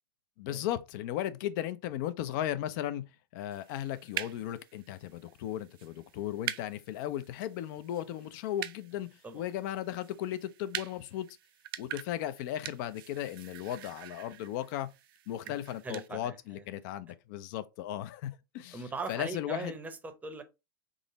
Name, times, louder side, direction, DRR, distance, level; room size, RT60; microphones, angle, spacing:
voice 1, 0.4-3.0 3.3-11.3 11.8-14.9 15.3-18.8 19.1-19.7, left 12 dB, 55° left, 0.5 m, -36 dB
sound 1, 3.5-16.1, right 13 dB, 70° right, 0.4 m, -45 dB
voice 2, 15.8-16.6 18.7-20.4, right 3 dB, 10° right, 0.7 m, -40 dB
3.7 x 2.0 x 3.8 m
hypercardioid pair, 115°, 12 cm